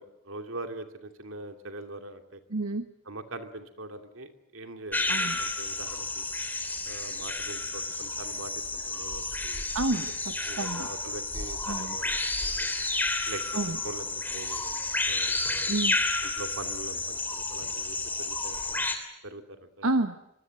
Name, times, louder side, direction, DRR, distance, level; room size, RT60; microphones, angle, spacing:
voice 1, 0.0-2.4 3.1-6.3 6.9-9.6 10.4-12.7 13.3-13.4 13.8-14.0 14.3-14.8 15.1-15.4 15.6-15.8 16.2-18.9 19.2-19.9, right 2 dB, 70° right, 6 dB, 2.7 m, -42 dB
voice 2, 2.5-2.9 5.1-5.4 9.7-10.9 11.7-12.0 13.5-13.8 15.7-16.0 19.8-20.2, right 2 dB, 90° right, 8 dB, 1.3 m, -29 dB
sound 1, 4.9-19.0, left 2 dB, 10° left, 3.1 m, -31 dB
25.5 x 22.5 x 7.8 m, 0.86 s
head